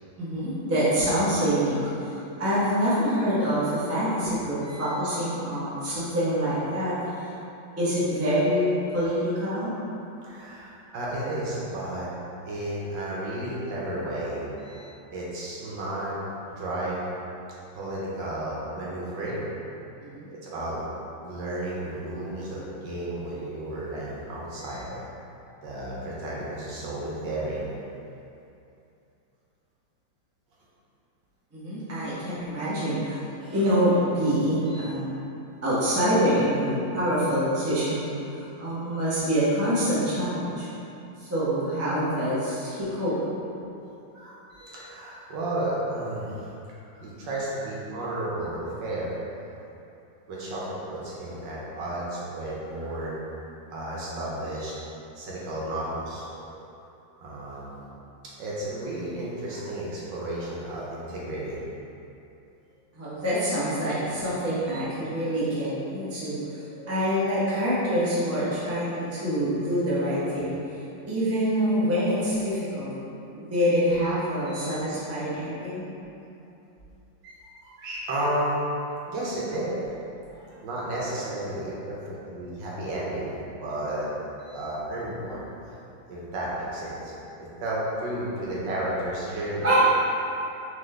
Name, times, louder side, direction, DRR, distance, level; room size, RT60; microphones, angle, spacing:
voice 1, 0.2-1.8 2.4-6.9 7.8-9.7 20.0-20.3 31.5-35.1 35.6-40.7 41.2-43.1 43.6-43.7 62.9-66.4 66.9-70.6 71.1-72.9 73.3-75.8 89.6-89.9, equal, 20° right, -10 dB, 0.3 m, -25 dB
voice 2, 10.2-12.1 12.4-16.1 16.5-17.1 17.7-19.4 20.3-20.8 21.2-25.0 25.6-27.7 34.7-34.9 44.1-46.5 47.0-49.1 50.3-53.1 53.7-54.8 55.1-56.6 57.2-57.8 58.4-61.6 64.7-64.8 65.2-65.7 66.1-67.1 71.0-71.2 74.5-74.7 77.2-78.6 79.1-79.9 80.3-84.1 84.4-85.5 86.1-87.1 87.6-89.7, right 1 dB, 70° right, -6 dB, 1.4 m, -33 dB
3.9 x 3.7 x 3.2 m, 2.8 s
omnidirectional pair, 2.2 m